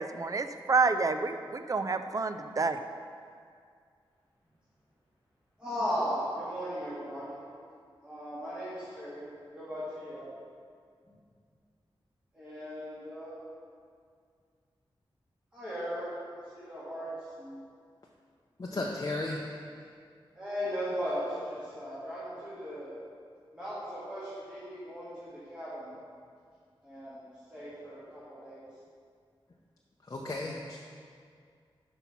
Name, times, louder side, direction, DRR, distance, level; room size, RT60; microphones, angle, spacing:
voice 1, 0.0-2.8, right 4 dB, 40° right, 9 dB, 0.4 m, -29 dB
voice 2, 5.6-7.4 8.0-10.3 11.1-11.2 12.3-13.3 15.5-16.1 16.5-17.6 18.7-19.1 20.4-22.9 23.5-25.9 26.8-28.7, equal, 10° right, -11 dB, 1.9 m, -37 dB
voice 3, 18.6-19.4 30.0-30.8, left 2 dB, 40° left, -2 dB, 0.6 m, -34 dB
5.9 x 5.4 x 5.9 m, 2.2 s
wide cardioid pair, 110°, 9 cm